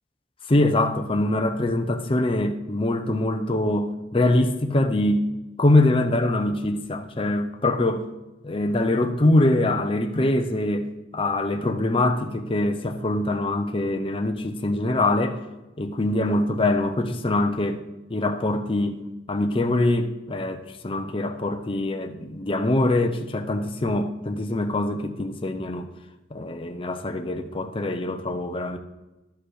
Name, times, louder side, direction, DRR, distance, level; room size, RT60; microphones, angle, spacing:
voice 1, 0.5-5.3 5.6-8.1 8.4-10.9 11.1-15.4 15.8-17.8 18.1-19.0 19.3-25.9 26.3-28.8, left 1 dB, 30° left, 0.7 m, -23 dB
11.5 x 5.3 x 6.3 m
head